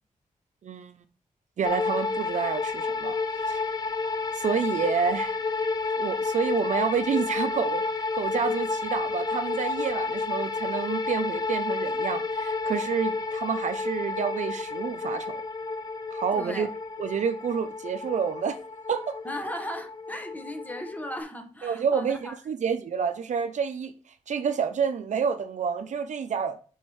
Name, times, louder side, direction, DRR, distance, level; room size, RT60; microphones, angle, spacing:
voice 1, 0.6-1.0 1.6-3.2 3.4-3.8 4.3-5.4 6.0-7.8 8.1-15.3 16.1-16.7 17.0-18.6 18.9-19.2 21.6-23.9 24.3-26.6, right 6 dB, 60° right, 0.6 m, -29 dB
sound 1, 1.6-21.2, left 3 dB, 30° left, 0.6 m, -30 dB
voice 2, 16.3-16.7 19.2-22.4, left 1 dB, 10° left, 1.0 m, -37 dB
5.5 x 4.5 x 4.8 m
wide cardioid pair, 160°, 14 cm